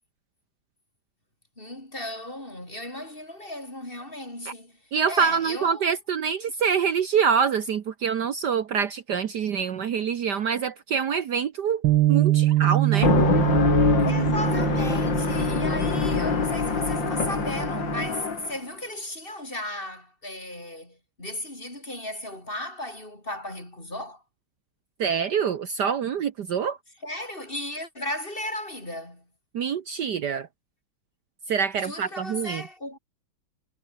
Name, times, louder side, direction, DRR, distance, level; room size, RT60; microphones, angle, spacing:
voice 1, 1.6-4.8 5.1-5.9 14.0-24.2 27.0-29.2 31.8-33.0, left 1 dB, 25° left, 7.0 m, -35 dB
voice 2, 4.9-13.1 25.0-26.8 29.5-30.5 31.5-32.6, right 6 dB, 60° right, 1.6 m, -25 dB
Bass guitar, 11.8-18.1, right 15 dB, 80° right, 1.4 m, -25 dB
sound 1, 12.9-18.6, left 5 dB, 65° left, 3.4 m, -24 dB
omnidirectional pair, 2.2 m